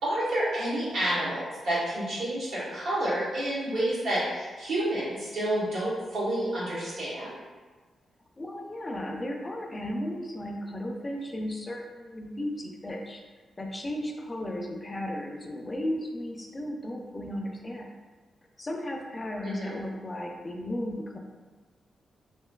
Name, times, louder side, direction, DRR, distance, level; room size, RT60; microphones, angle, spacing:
voice 1, 0.0-7.4 19.4-19.8, right 1 dB, 75° right, -8 dB, 1.2 m, -29 dB
voice 2, 8.4-13.2 13.6-17.9 18.6-21.2, left 1 dB, 20° left, 1 dB, 0.4 m, -35 dB
3.0 x 2.5 x 2.3 m, 1.3 s
wide cardioid pair, 130°, 0 cm